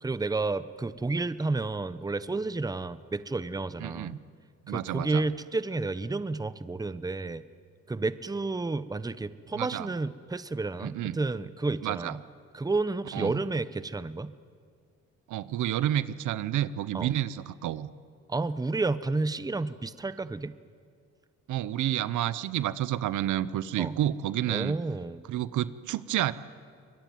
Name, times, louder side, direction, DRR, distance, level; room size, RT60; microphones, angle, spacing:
voice 1, 0.0-4.2 4.7-7.4 7.9-12.2 12.5-14.3 16.9-17.1 18.3-20.5 23.8-24.0 24.5-25.2, right 3 dB, 10° right, 14 dB, 0.8 m, -31 dB
voice 2, 3.8-4.2 4.7-5.2 9.5-9.9 10.8-11.2 11.8-12.1 13.1-13.4 15.3-17.9 21.5-24.7 25.3-26.3, right 12 dB, 80° right, 16 dB, 0.9 m, -30 dB
24.0 x 21.0 x 9.4 m, 2.1 s
cardioid pair, 90°, 30 cm